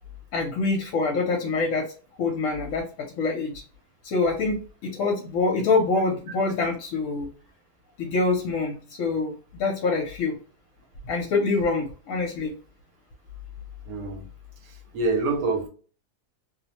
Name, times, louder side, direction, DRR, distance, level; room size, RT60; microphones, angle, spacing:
voice 1, 0.3-1.9 2.2-3.5 4.0-7.3 8.0-10.4 11.0-12.5, left 3 dB, 65° left, 1.0 m, -25 dB
voice 2, 13.9-14.2 14.9-15.7, right 3 dB, 90° right, 1.3 m, -25 dB
2.8 x 2.0 x 2.8 m
omnidirectional pair, 1.7 m